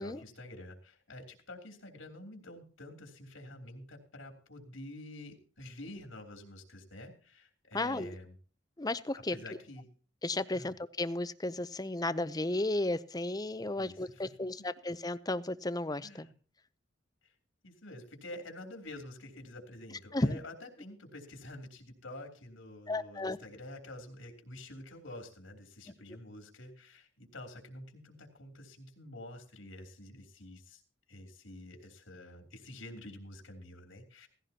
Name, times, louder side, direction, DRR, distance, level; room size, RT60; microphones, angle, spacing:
voice 1, 0.0-8.3 9.3-9.9 10.5-10.7 13.8-14.0 16.0-16.3 17.2-17.3 17.6-30.8 31.1-34.3, left 1 dB, 85° left, 3 dB, 3.1 m, -48 dB
voice 2, 7.7-8.1 8.8-9.4 10.2-16.3 20.1-20.4 22.9-23.4, left 2 dB, 20° left, 14 dB, 0.6 m, -34 dB
17.0 x 16.0 x 2.9 m, 0.41 s
head